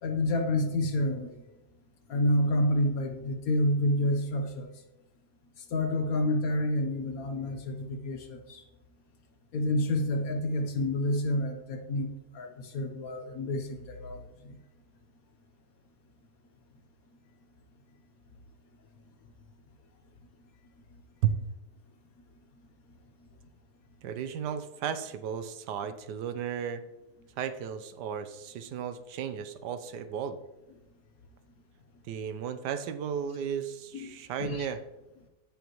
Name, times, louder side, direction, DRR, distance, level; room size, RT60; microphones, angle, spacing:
voice 1, 0.0-1.3 2.1-4.7 5.7-8.6 9.5-14.5 33.9-34.1 34.4-34.7, left 1 dB, 60° left, 5 dB, 1.4 m, -29 dB
voice 2, 24.0-26.8 27.4-30.4 32.0-34.8, right 8 dB, 85° right, 10 dB, 1.3 m, -34 dB
16.0 x 5.3 x 3.1 m, 1.0 s
omnidirectional pair, 1.7 m